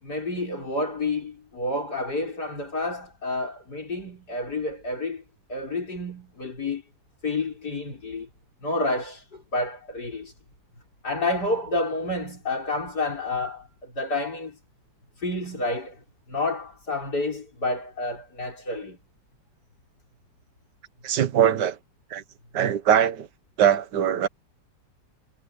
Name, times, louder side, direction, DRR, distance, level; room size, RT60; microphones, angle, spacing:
voice 1, 0.0-5.2 5.5-6.8 7.2-8.3 8.6-10.3 11.0-14.6 15.2-16.0 16.3-19.0, left 2 dB, 60° left, 6.7 m, -29 dB
voice 2, 21.0-21.8 22.1-22.2 22.5-23.3 23.6-24.3, right 9 dB, 70° right, 1.9 m, -21 dB
omnidirectional pair, 1.9 m